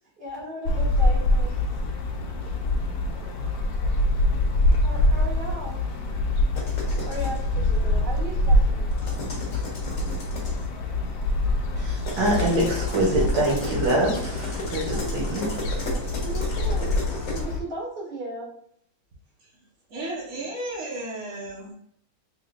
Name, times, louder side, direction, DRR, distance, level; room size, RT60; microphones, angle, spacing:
voice 1, 0.2-1.5 4.8-5.8 7.0-8.9 14.8-15.3 15.9-18.5 20.3-20.4, right 1 dB, 30° right, 1.7 m, -36 dB
sound 1, 0.6-17.6, left 1 dB, 75° left, 0.8 m, -25 dB
sound 2, 6.6-7.4 8.9-10.7 12.0-17.4, left 2 dB, 50° left, 0.9 m, -35 dB
voice 2, 11.8-15.6, right 1 dB, 75° right, 1.4 m, -25 dB
voice 3, 19.9-21.7, right 1 dB, 55° right, 1.0 m, -33 dB
3.6 x 3.2 x 2.3 m
omnidirectional pair, 2.3 m